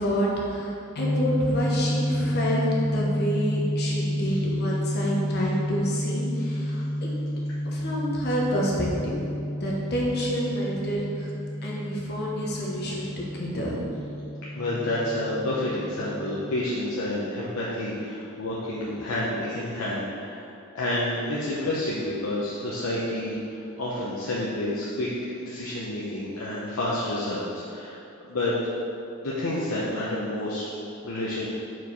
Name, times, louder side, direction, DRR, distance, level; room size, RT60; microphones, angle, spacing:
voice 1, 0.0-7.1 7.6-9.1 9.5-11.3 11.6-13.8, equal, 50° left, -4 dB, 1.1 m, -28 dB
sound 1, 1.0-16.6, equal, 70° left, 0.5 m, -30 dB
voice 2, 14.5-20.4 20.7-25.1 25.4-28.0 28.3-28.5 29.2-30.7 31.0-31.5, left 1 dB, 85° left, -7 dB, 0.8 m, -29 dB
4.7 x 4.6 x 5.4 m, 2.7 s
head